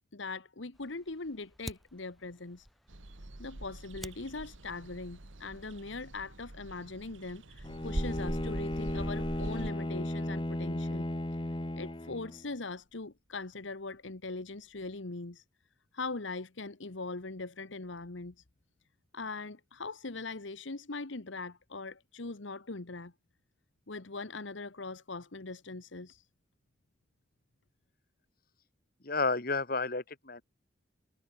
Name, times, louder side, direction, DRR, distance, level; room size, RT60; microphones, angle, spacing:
voice 1, 0.1-2.7 3.4-11.1 11.8-15.4 15.9-18.3 19.1-23.1 23.9-26.2, left 3 dB, 75° left, 1.4 m, -41 dB
Fire, 0.7-6.1, equal, ahead, 2.6 m, -52 dB
sound 1, 2.9-9.7, right 1 dB, 80° right, 2.0 m, -42 dB
Bowed string instrument, 7.6-12.5, left 1 dB, 25° left, 1.1 m, -35 dB
voice 2, 29.0-30.4, left 3 dB, 50° left, 2.0 m, -31 dB
head